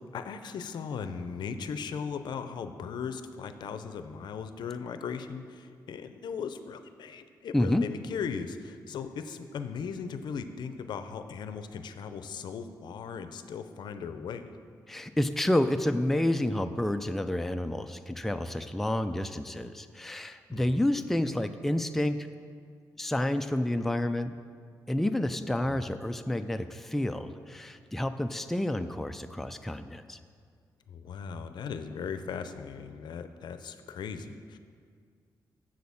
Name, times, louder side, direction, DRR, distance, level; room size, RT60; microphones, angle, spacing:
voice 1, 0.1-14.5 20.5-20.8 25.6-26.0 30.9-34.6, left 6 dB, 75° left, 10 dB, 0.5 m, -38 dB
voice 2, 7.5-7.9 14.9-22.3 23.0-24.3 24.9-30.2, left 1 dB, 5° left, 8 dB, 0.3 m, -29 dB
7.6 x 6.3 x 6.9 m, 2.1 s
cardioid pair, 110°, 8 cm